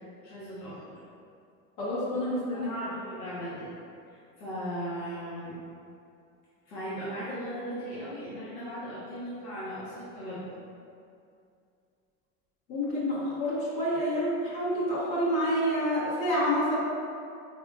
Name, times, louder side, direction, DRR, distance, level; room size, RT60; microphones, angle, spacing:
voice 1, 0.2-1.0 2.5-3.8 4.1-5.6 6.6-10.5, equal, 85° left, -11 dB, 1.2 m, -37 dB
voice 2, 1.8-2.7 12.7-16.8, equal, 60° left, -9 dB, 1.4 m, -28 dB
3.5 x 3.5 x 2.4 m, 2.5 s
hypercardioid pair, 85°, 44 cm